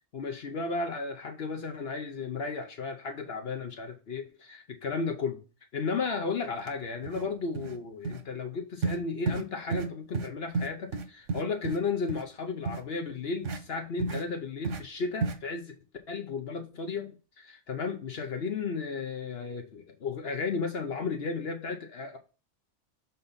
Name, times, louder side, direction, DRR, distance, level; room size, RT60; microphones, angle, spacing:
voice 1, 0.1-5.4 5.7-15.7 16.1-22.2, left 4 dB, 60° left, 1.0 m, -34 dB
sound 1, 6.6-6.7 7.0-7.3 7.5-7.8 8.0-8.2 8.8-9.0 9.3-9.4 9.7-9.9 10.1-10.3 10.5-11.8 12.1-12.2 12.6-12.8 13.4-13.6 14.0-14.2 14.6-14.8 15.2-15.4, right 4 dB, 90° right, 1.3 m, -31 dB
6.8 x 4.0 x 4.1 m
omnidirectional pair, 1.2 m